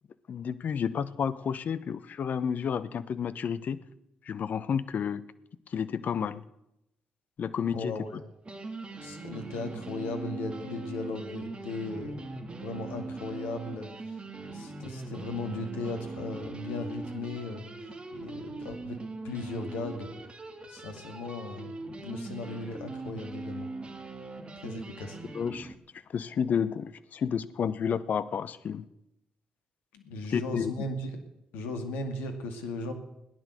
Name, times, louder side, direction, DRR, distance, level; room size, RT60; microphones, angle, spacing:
voice 1, 0.3-3.8 4.3-5.2 5.7-6.4 7.4-7.9 25.3-25.7 26.1-28.8 30.3-30.7, left 7 dB, 55° left, 15 dB, 0.9 m, -31 dB
voice 2, 7.7-8.2 9.0-19.0 19.2-20.1 20.7-21.7 22.0-23.7 24.6-25.2 29.9-31.2 31.5-32.9, left 2 dB, 75° left, 5 dB, 2.3 m, -37 dB
sound 1, 8.0-8.1 8.4-25.7, right 3 dB, 30° right, 2.5 m, -41 dB
17.0 x 10.5 x 6.5 m, 0.86 s
hypercardioid pair, 45°, 3 cm